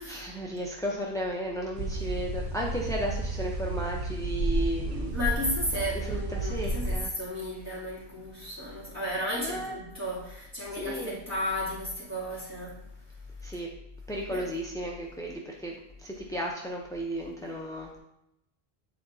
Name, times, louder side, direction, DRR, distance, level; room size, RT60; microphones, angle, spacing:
voice 1, 0.1-5.1 6.0-7.1 9.4-9.8 10.7-11.2 13.4-13.7 14.1-18.0, equal, 5° left, 0.4 m, -34 dB
sound 1, 1.7-7.0, right 2 dB, 55° right, 0.7 m, -31 dB
voice 2, 5.1-12.9 14.3-14.5, left 1 dB, 15° right, 2.4 m, -34 dB
9.1 x 4.1 x 2.6 m
omnidirectional pair, 1.1 m